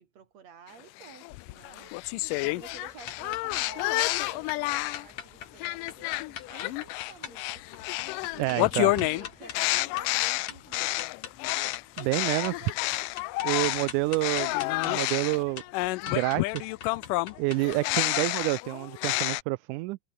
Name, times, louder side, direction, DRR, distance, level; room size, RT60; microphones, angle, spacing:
voice 1, 0.0-7.7 8.0-11.1 13.1-13.9, right 7 dB, 55° right, 3.8 m, -51 dB
sound 1, 1.0-5.1 5.6-13.9 14.2-19.4, left 21 dB, 90° left, 2.2 m, -29 dB
sound 2, 2.0-14.5, equal, ahead, 5.2 m, -61 dB
sound 3, 3.0-17.7, left 8 dB, 60° left, 3.3 m, -43 dB
voice 2, 8.4-9.0 12.0-12.7 13.4-14.6 14.8-15.6 16.1-16.7 17.4-20.0, right 21 dB, 80° right, 2.0 m, -28 dB
omnidirectional pair, 3.7 m